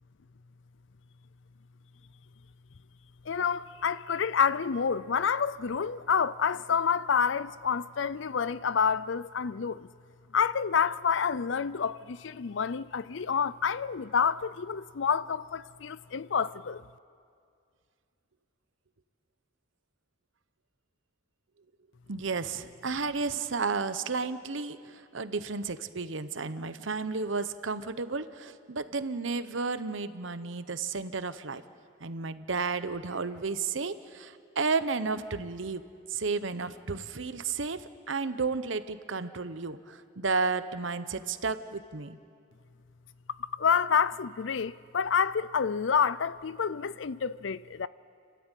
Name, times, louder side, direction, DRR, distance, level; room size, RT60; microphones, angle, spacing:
voice 1, 3.3-9.9 10.3-16.8 43.5-47.9, left 6 dB, 70° left, 0.5 m, -28 dB
voice 2, 22.1-31.6 32.0-35.8 36.1-42.2, right 4 dB, 75° right, 0.9 m, -32 dB
29.5 x 13.0 x 9.1 m
head